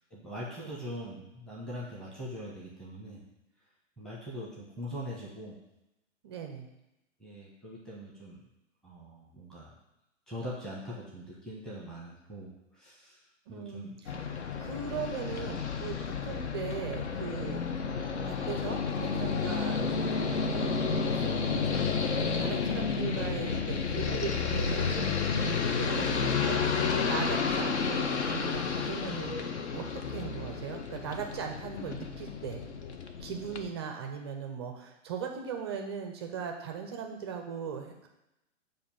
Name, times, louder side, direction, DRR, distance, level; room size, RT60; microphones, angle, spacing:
voice 1, 0.1-3.2 4.0-5.6 7.2-8.4 8.8-9.7 10.3-13.2 13.5-14.0, equal, ahead, -7 dB, 1.0 m, -42 dB
voice 2, 6.2-6.7 13.5-14.2 14.6-17.6 18.2-20.8 21.1-32.6 33.2-38.1, right 6 dB, 20° right, 3 dB, 0.4 m, -39 dB
sound 1, 14.1-33.7, left 5 dB, 60° left, 0.7 m, -31 dB
7.0 x 2.6 x 5.5 m, 0.92 s
figure-of-eight pair, 115°, 38 cm